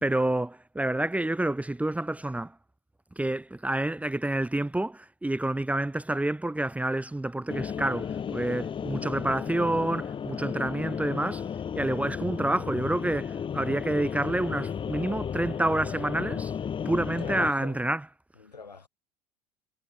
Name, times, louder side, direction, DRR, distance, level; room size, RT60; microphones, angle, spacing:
voice 1, 0.0-2.5 3.2-11.4 11.7-16.5 16.8-18.0, right 1 dB, 5° right, 1.5 m, -28 dB
sound 1, 7.5-17.5, left 7 dB, 25° left, 1.1 m, -34 dB
voice 2, 17.0-17.8 18.4-18.9, left 4 dB, 85° left, 7.0 m, -43 dB
figure-of-eight pair, 75°, 21 cm